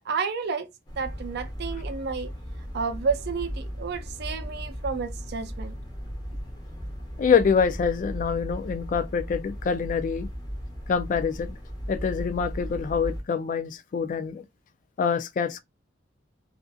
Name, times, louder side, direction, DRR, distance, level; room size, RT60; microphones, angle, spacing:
voice 1, 0.1-0.7 1.0-2.3 2.7-5.8, right 5 dB, 60° right, 0.5 m, -30 dB
sound 1, 0.9-13.2, equal, 20° left, 1.0 m, -36 dB
voice 2, 7.2-10.3 10.9-11.6 11.9-14.4 15.0-15.6, left 6 dB, 45° left, 0.3 m, -25 dB
2.5 x 2.5 x 2.3 m
head